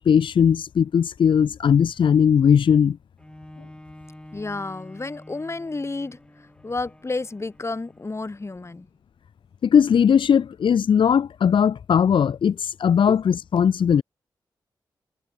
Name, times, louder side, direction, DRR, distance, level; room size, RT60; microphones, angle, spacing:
voice 1, 0.0-3.0 9.6-14.0, left 7 dB, 75° left, 1.2 m, -19 dB
Bowed string instrument, 3.2-8.8 9.4-9.5, left 1 dB, 10° left, 5.5 m, -47 dB
voice 2, 4.3-6.2 6.6-8.9 13.1-13.2, left 3 dB, 35° left, 2.0 m, -31 dB
cardioid pair, 50°, 8 cm